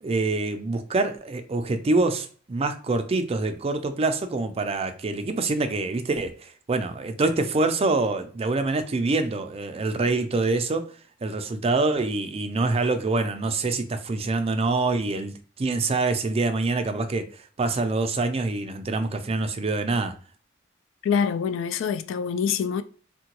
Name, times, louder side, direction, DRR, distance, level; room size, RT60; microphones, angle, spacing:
voice 1, 0.0-20.2, right 3 dB, 30° right, 0.4 m, -25 dB
voice 2, 21.0-22.8, left 6 dB, 70° left, 0.3 m, -25 dB
3.6 x 2.2 x 2.9 m
head